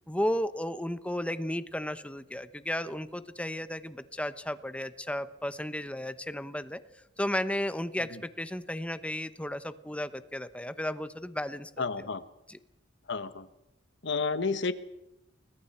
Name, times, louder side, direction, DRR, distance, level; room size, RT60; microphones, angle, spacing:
voice 1, 0.1-6.8 7.2-12.1 12.5-12.6, left 1 dB, 5° left, 12 dB, 0.9 m, -34 dB
voice 2, 11.8-12.2 13.1-13.5 14.0-14.7, left 4 dB, 65° left, 12 dB, 1.3 m, -31 dB
30.0 x 21.0 x 4.5 m, 0.91 s
head